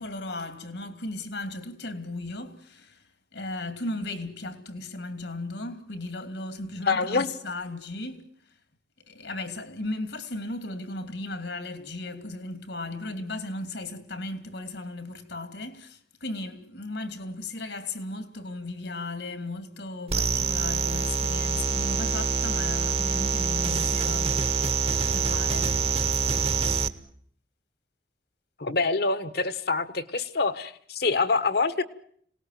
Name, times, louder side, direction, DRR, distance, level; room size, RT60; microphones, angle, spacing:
voice 1, 0.0-3.1 3.3-8.3 9.1-24.8 25.1-26.1, left 2 dB, 80° left, 2.9 m, -36 dB
voice 2, 6.9-7.3 28.6-31.8, left 4 dB, 60° left, 1.4 m, -25 dB
sound 1, 20.1-26.9, right 5 dB, 35° right, 1.1 m, -26 dB
26.5 x 19.0 x 9.3 m
head